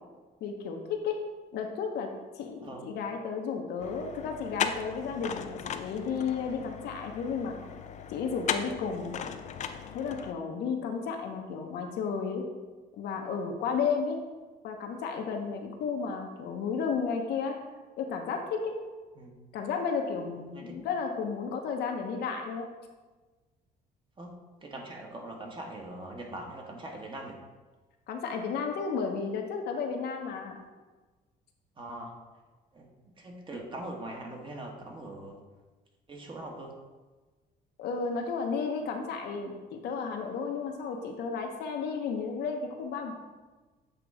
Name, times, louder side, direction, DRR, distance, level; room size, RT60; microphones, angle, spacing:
voice 1, 0.4-1.2 1.5-2.1 2.3-7.5 8.1-9.2 9.9-12.4 12.9-14.2 14.6-17.6 18.0-18.8 19.5-22.7 28.1-30.6 37.8-43.1, left 5 dB, 75° left, 3 dB, 0.9 m, -33 dB
sound 1, 3.8-10.3, left 7 dB, 45° left, 0.4 m, -37 dB
voice 2, 20.4-20.8 24.2-24.3 24.6-27.4 31.8-32.1 32.7-32.9 33.2-35.4 36.1-36.7, right 1 dB, 30° right, 1 dB, 1.2 m, -42 dB
7.9 x 3.0 x 4.8 m, 1.3 s
cardioid pair, 110°, 17 cm